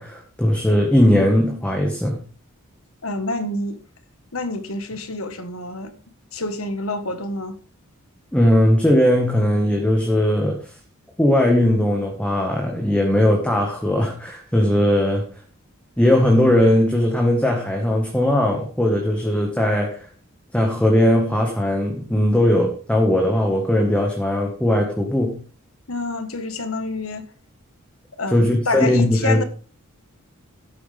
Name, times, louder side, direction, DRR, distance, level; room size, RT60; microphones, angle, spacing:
voice 1, 0.0-2.2 8.3-10.6 11.2-15.2 16.0-20.1 20.5-25.4 28.3-29.4, left 1 dB, 5° left, 1.7 m, -19 dB
voice 2, 3.0-3.8 4.3-5.9 6.3-7.6 25.9-27.3 28.1-29.4, left 2 dB, 75° left, 1.7 m, -27 dB
12.5 x 9.5 x 3.6 m
head